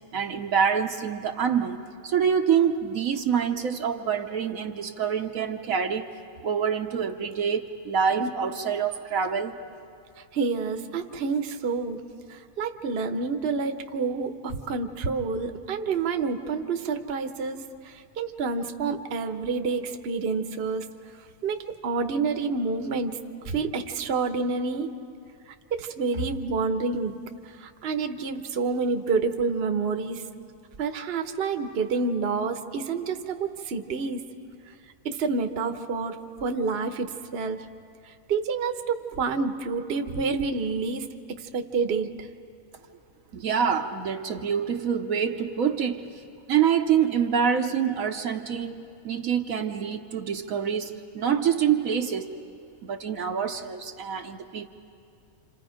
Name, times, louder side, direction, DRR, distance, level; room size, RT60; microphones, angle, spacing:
voice 1, 0.1-1.8 2.0-6.1 6.4-9.5 43.3-46.0 46.5-52.3 52.8-54.7, right 7 dB, 70° right, 5 dB, 1.2 m, -26 dB
voice 2, 10.3-17.6 17.8-21.0 21.4-24.9 25.7-30.4 30.8-34.2 35.0-37.7 38.3-42.3, right 4 dB, 45° right, 6 dB, 1.1 m, -28 dB
29.5 x 27.0 x 5.1 m, 2.5 s
omnidirectional pair, 1.6 m